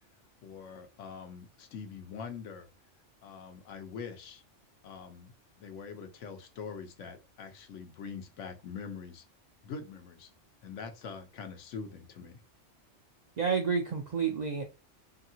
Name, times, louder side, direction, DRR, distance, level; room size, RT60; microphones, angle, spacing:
voice 1, 0.4-2.7 3.2-4.4 4.8-9.2 9.6-10.3 10.6-12.4, left 5 dB, 85° left, 1.0 m, -44 dB
voice 2, 13.4-14.6, right 6 dB, 65° right, 0.4 m, -29 dB
2.8 x 2.6 x 2.7 m
omnidirectional pair, 1.3 m